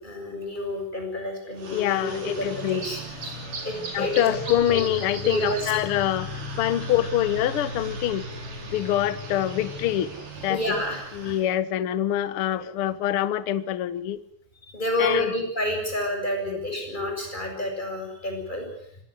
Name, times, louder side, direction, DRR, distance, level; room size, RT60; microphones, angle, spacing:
voice 1, 0.0-3.4 3.6-4.3 4.7-4.8 5.2-5.7 10.5-11.1 12.5-12.7 14.6-18.7, left 1 dB, 10° left, 3 dB, 7.0 m, -29 dB
sound 1, 1.6-11.5, right 1 dB, 60° right, 6.0 m, -36 dB
voice 2, 1.7-2.9 3.9-8.3 8.7-10.1 10.4-10.7 11.1-14.2 15.0-15.3 16.5-16.6, left 12 dB, 70° left, 15 dB, 1.3 m, -25 dB
25.0 x 19.0 x 8.0 m, 0.71 s
omnidirectional pair, 4.2 m